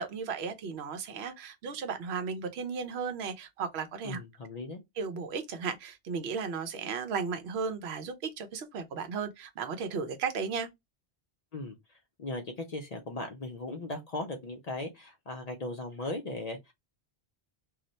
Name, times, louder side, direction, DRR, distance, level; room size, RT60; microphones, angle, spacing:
voice 1, 0.0-4.2 5.0-10.7, right 5 dB, 80° right, 0.9 m, -35 dB
voice 2, 4.0-4.8 11.5-16.7, left 2 dB, 50° left, 0.5 m, -38 dB
2.4 x 2.1 x 3.8 m
omnidirectional pair, 1.1 m